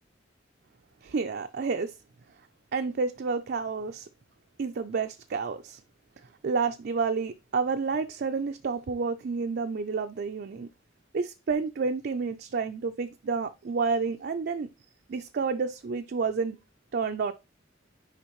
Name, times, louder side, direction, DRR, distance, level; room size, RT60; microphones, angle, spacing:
voice 1, 1.0-2.0 2.7-4.1 4.6-5.8 6.4-10.7 11.1-14.7 15.1-16.6 16.9-17.3, right 4 dB, 50° right, 0.4 m, -30 dB
10.0 x 3.4 x 3.0 m
head